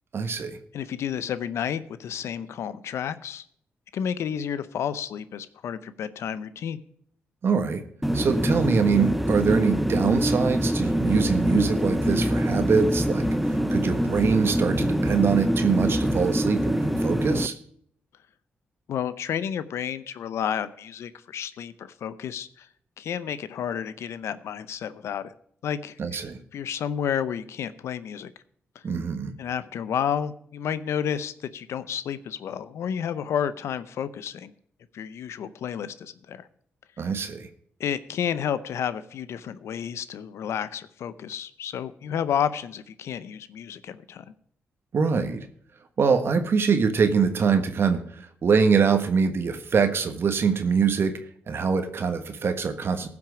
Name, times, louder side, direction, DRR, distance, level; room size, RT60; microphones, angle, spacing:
voice 1, 0.1-0.6 7.4-7.8 8.1-17.5 26.0-26.4 28.8-29.3 37.0-37.5 44.9-45.5 46.0-51.1 51.5-53.1, right 5 dB, 60° right, 8 dB, 1.4 m, -24 dB
voice 2, 0.7-3.4 3.9-6.8 18.9-22.7 23.0-25.3 25.6-26.2 26.5-28.3 28.7-28.8 29.4-34.5 34.9-36.5 37.8-44.2, left 8 dB, 80° left, 14 dB, 0.6 m, -31 dB
sound 1, 8.0-17.5, equal, ahead, 0.7 m, -24 dB
15.0 x 6.0 x 6.0 m, 0.63 s
cardioid pair, 65°, 5 cm